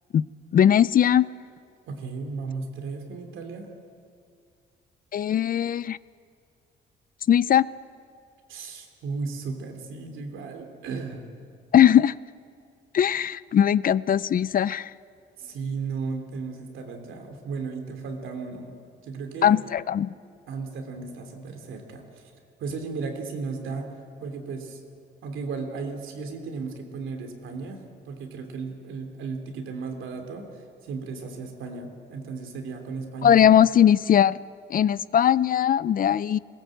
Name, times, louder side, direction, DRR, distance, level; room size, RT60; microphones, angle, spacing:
voice 1, 0.5-1.3 5.1-6.0 7.3-7.7 11.7-12.1 12.9-14.9 19.4-20.1 33.2-34.4 34.7-36.4, left 9 dB, 45° left, 19 dB, 0.5 m, -19 dB
voice 2, 1.9-3.7 8.5-11.2 15.4-18.8 19.0-19.6 20.5-22.3 22.6-23.9 24.2-24.8 25.2-33.4, right 4 dB, 80° right, 4 dB, 3.1 m, -35 dB
20.5 x 17.5 x 7.8 m, 2.3 s
cardioid pair, 90°, 20 cm